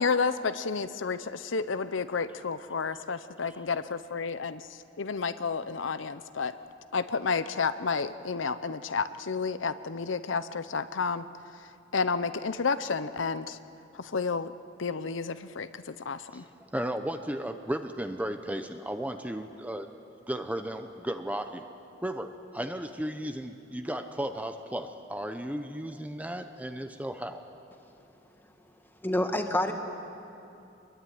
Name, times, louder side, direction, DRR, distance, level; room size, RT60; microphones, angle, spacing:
voice 1, 0.0-4.6 5.0-6.5 6.9-11.2 11.9-13.6 14.0-14.5 14.8-15.7 16.1-16.4, left 5 dB, 75° left, 12 dB, 0.7 m, -30 dB
voice 2, 16.3-19.9 20.3-21.7 22.0-27.4, right 1 dB, 10° right, 7 dB, 0.8 m, -35 dB
voice 3, 29.0-29.7, left 1 dB, 10° left, 4 dB, 1.8 m, -27 dB
25.5 x 21.5 x 9.4 m, 2.7 s
head